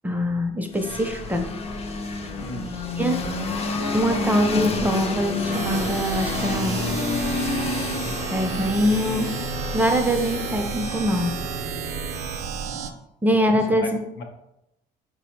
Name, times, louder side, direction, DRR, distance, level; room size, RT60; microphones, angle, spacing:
voice 1, 0.0-1.5 2.7-3.3 3.9-6.8 8.3-9.4 9.7-11.3 13.2-14.0, equal, 10° right, 5 dB, 0.5 m, -23 dB
sound 1, 0.7-12.5, left 3 dB, 35° left, 0.5 m, -29 dB
voice 2, 2.4-2.7 13.3-13.9 14.2-14.3, left 3 dB, 85° left, 3 dB, 0.8 m, -34 dB
sound 2, 5.5-12.9, right 6 dB, 85° right, 0.4 m, -31 dB
4.3 x 2.1 x 4.3 m, 0.85 s
cardioid pair, 110°, 17 cm